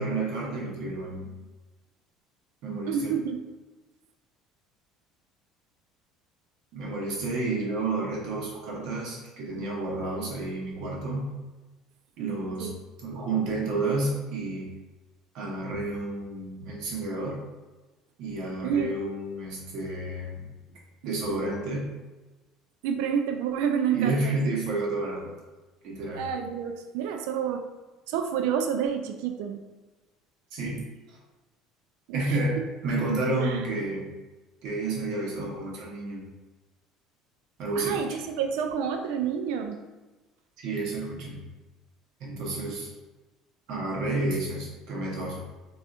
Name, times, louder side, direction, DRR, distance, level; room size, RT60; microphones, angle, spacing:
voice 1, 0.0-1.3 2.6-3.2 6.7-11.3 12.2-12.7 13.0-14.7 15.3-17.4 18.2-20.5 21.0-22.0 23.9-25.3 25.8-26.2 30.5-30.8 32.1-34.1 34.6-36.3 37.6-38.2 40.6-41.4 42.2-42.9 43.7-45.4, right 2 dB, 55° right, -3 dB, 0.9 m, -30 dB
voice 2, 2.9-3.4 12.6-12.7 18.6-18.9 22.8-24.4 26.1-27.6 28.1-29.6 32.1-32.4 33.4-33.6 37.8-39.8, right 7 dB, 80° right, 5 dB, 0.4 m, -29 dB
4.2 x 2.4 x 2.5 m, 1.2 s
cardioid pair, 165°, 0 cm